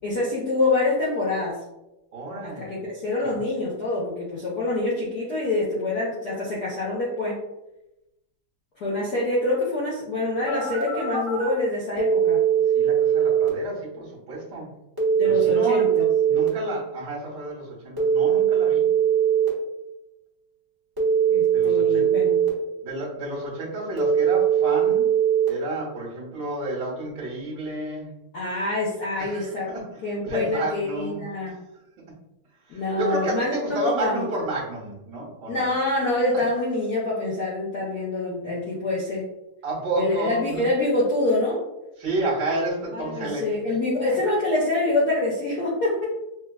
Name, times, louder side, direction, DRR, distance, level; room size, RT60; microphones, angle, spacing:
voice 1, 0.0-1.6 2.4-7.4 8.8-12.4 15.2-16.4 21.3-22.4 28.3-29.7 30.0-31.6 32.7-34.2 35.5-39.2 40.0-41.6 42.9-46.0, left 2 dB, 65° left, -5 dB, 1.0 m, -26 dB
voice 2, 2.1-2.7 3.3-3.5 12.7-14.7 15.2-18.9 21.5-22.1 22.8-25.1 25.5-28.1 29.2-29.8 30.2-31.2 31.5-31.6 32.7-35.7 39.6-40.7 42.0-43.8, right 2 dB, 55° right, -6 dB, 1.8 m, -31 dB
Telephone, 10.5-11.5 12.0-13.5 15.0-16.5 18.0-19.5 21.0-22.5 24.0-25.5, right 8 dB, 15° right, 0.8 m, -20 dB
6.0 x 2.3 x 2.3 m, 0.92 s
omnidirectional pair, 2.4 m